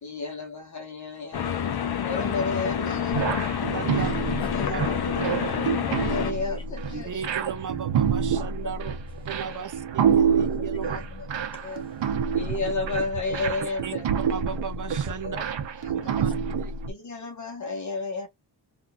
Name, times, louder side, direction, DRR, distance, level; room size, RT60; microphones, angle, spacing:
voice 1, 0.0-1.5 2.0-3.3 3.8-4.1 4.5-4.9 5.8-7.2 9.4-9.6 10.8-11.3 11.6-11.8 12.3-14.1 15.2-15.4 15.8-16.3 16.9-18.3, left 3 dB, 40° left, 1.4 m, -32 dB
voice 2, 1.1-1.5 3.0-3.4 4.4-4.7 5.3-5.7 6.2-7.1 9.1-9.2 10.5-10.9 11.5-12.6 16.2-16.4, left 2 dB, 10° left, 1.0 m, -52 dB
sound 1, 1.3-6.3, left 8 dB, 60° left, 0.7 m, -28 dB
sound 2, 3.1-16.9, right 7 dB, 80° right, 0.8 m, -27 dB
voice 3, 3.7-4.2 4.6-4.8 6.9-8.9 9.3-11.0 13.6-13.9 14.3-15.4 16.2-16.3 16.6-16.7, right 7 dB, 45° right, 0.6 m, -36 dB
3.8 x 2.7 x 2.3 m
wide cardioid pair, 175°, 44 cm